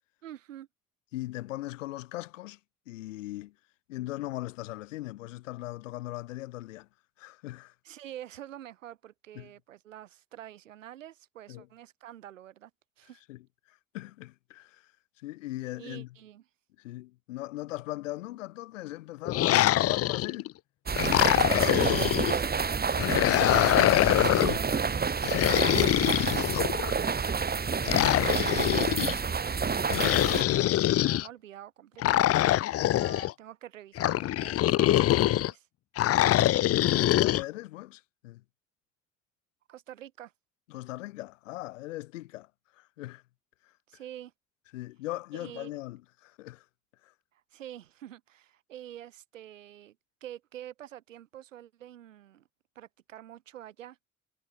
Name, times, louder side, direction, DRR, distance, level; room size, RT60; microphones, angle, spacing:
voice 1, 0.2-0.7 7.8-12.7 13.0-13.2 15.8-16.4 21.9-24.1 24.4-35.7 39.7-40.3 43.9-44.3 45.3-45.7 47.3-50.0 50.2-52.5 52.8-54.0, right 12 dB, 80° right, 5.9 m, -47 dB
voice 2, 1.1-2.6 2.9-3.5 3.9-6.9 7.2-7.7 9.3-9.5 11.5-11.7 13.3-14.9 15.2-16.1 16.8-20.6 36.1-36.3 36.7-38.4 40.7-43.2 43.6-43.7 44.7-46.6 47.0-47.1, left 17 dB, 75° left, 2.5 m, -39 dB
sound 1, 19.3-20.5 20.9-22.4 23.0-24.6 25.2-26.9 27.8-29.2 29.9-31.3 32.0-33.3 34.0-35.5 36.0-37.4, left 14 dB, 40° left, 0.5 m, -24 dB
sound 2, 20.9-30.4, right 5 dB, 25° right, 1.3 m, -29 dB
figure-of-eight pair, 40°, 38 cm